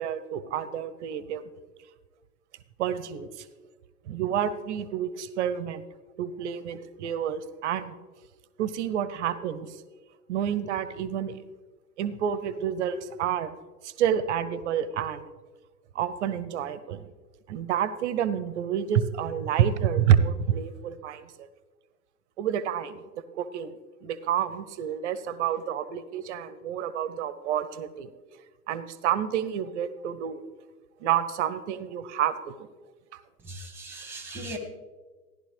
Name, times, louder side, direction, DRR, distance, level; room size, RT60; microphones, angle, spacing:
voice 1, 0.0-1.4 2.8-3.4 4.1-5.8 6.2-7.9 8.6-9.8 10.3-11.4 12.0-13.5 13.8-15.2 15.9-17.0 17.5-21.5 22.4-23.0 23.4-23.7 24.0-28.1 28.7-30.4 31.0-32.7, right 9 dB, 45° right, 14 dB, 0.8 m, -28 dB
voice 2, 33.4-34.6, right 2 dB, 5° right, 5 dB, 1.6 m, -38 dB
14.5 x 11.0 x 3.3 m, 1.3 s
figure-of-eight pair, 105°, 48 cm